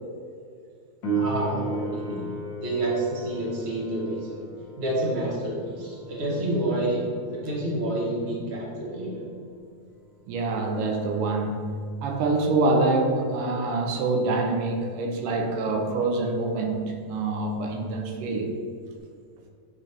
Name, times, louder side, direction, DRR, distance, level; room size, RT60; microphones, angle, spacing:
Piano, 1.0-11.4 19.0-19.1, right 3 dB, 65° left, 1.2 m, -36 dB
voice 1, 1.1-2.3 2.5-4.5 4.7-7.0 7.3-9.2, right 1 dB, 35° right, -5 dB, 1.0 m, -29 dB
voice 2, 10.3-11.7 12.0-18.5, right 3 dB, 85° right, 2 dB, 2.4 m, -25 dB
8.6 x 3.3 x 4.3 m, 2.2 s
omnidirectional pair, 3.6 m